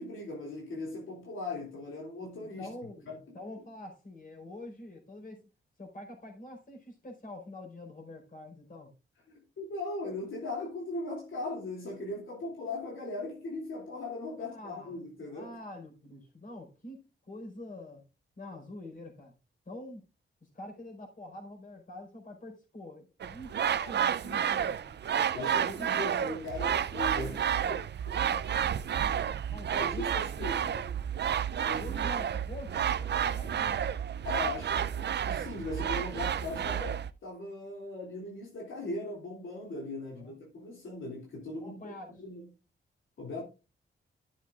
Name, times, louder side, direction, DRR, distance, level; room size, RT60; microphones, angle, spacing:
voice 1, 0.0-2.7 3.1-3.2 9.3-15.6 25.1-27.8 29.7-30.8 31.6-31.9 34.2-42.5 43.2-43.4, left 2 dB, 75° left, 2.7 m, -39 dB
voice 2, 2.4-5.4 5.8-8.9 14.4-15.0 15.3-18.0 18.4-19.3 19.7-20.0 20.4-25.0 28.2-29.2 29.5-30.9 31.7-33.9 40.2-40.4 41.5-42.1, left 1 dB, 40° left, 4.5 m, -46 dB
sound 1, 23.2-37.1, right 9 dB, 55° right, 0.5 m, -31 dB
13.5 x 7.2 x 2.4 m
wide cardioid pair, 115°, 20 cm